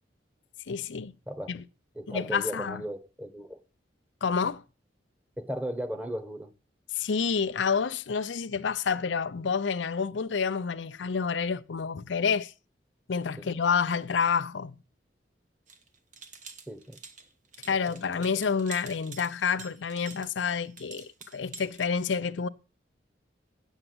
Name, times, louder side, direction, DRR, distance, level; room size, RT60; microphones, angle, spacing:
voice 1, 0.7-1.1 1.5-1.6 2.1-2.8 4.2-4.6 6.9-12.5 13.1-14.8 17.7-22.5, left 6 dB, 80° left, 0.6 m, -29 dB
voice 2, 1.9-3.6 5.4-6.5 13.4-13.5 16.7-17.0 17.6-17.8 18.2-18.3, equal, 10° right, 1.2 m, -36 dB
sound 1, 15.7-21.9, right 5 dB, 45° right, 1.2 m, -48 dB
8.9 x 7.1 x 7.9 m
head